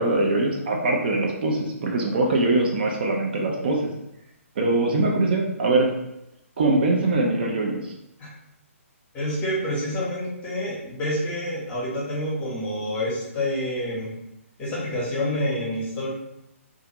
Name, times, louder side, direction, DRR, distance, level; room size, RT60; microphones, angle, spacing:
voice 1, 0.0-3.9 4.6-5.9 6.6-7.9, right 2 dB, 40° right, 0 dB, 0.4 m, -22 dB
voice 2, 9.1-14.2 14.6-16.1, left 1 dB, 15° left, -5 dB, 0.8 m, -28 dB
2.4 x 2.4 x 2.8 m, 0.85 s
figure-of-eight pair, 135°, 8 cm